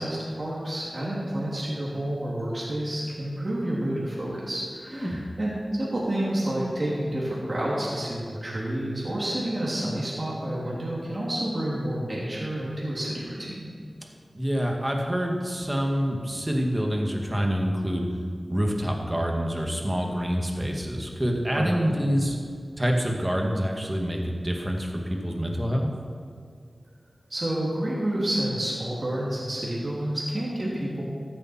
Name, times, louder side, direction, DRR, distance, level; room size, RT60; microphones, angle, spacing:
voice 1, 0.0-13.7 21.5-21.9 27.3-31.0, right 1 dB, 50° right, -6 dB, 3.0 m, -29 dB
voice 2, 14.3-18.1 18.5-22.4 22.8-25.9, equal, 20° right, 1 dB, 2.1 m, -26 dB
14.5 x 8.7 x 4.6 m, 2.2 s
wide cardioid pair, 50°, 0 cm